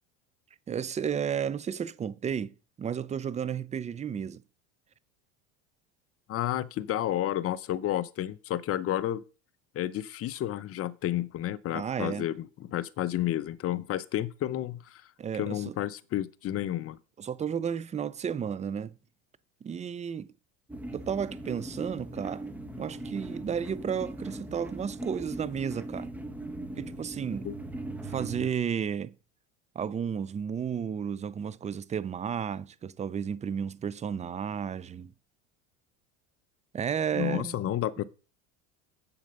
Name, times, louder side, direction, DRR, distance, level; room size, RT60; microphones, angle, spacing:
voice 1, 0.7-4.4 11.7-12.3 15.2-15.8 17.2-19.0 19.6-20.3 20.9-22.5 22.8-26.1 26.8-27.5 28.0-29.1 29.8-35.1 36.7-37.6, right 7 dB, 20° right, 0.5 m, -33 dB
voice 2, 6.3-9.2 9.7-15.0 15.3-17.0 27.4-27.6 37.1-38.0, left 12 dB, 40° left, 0.7 m, -31 dB
sound 1, 20.7-28.5, right 1 dB, 5° right, 1.2 m, -39 dB
7.8 x 7.1 x 5.3 m
supercardioid pair, 100°, 35 cm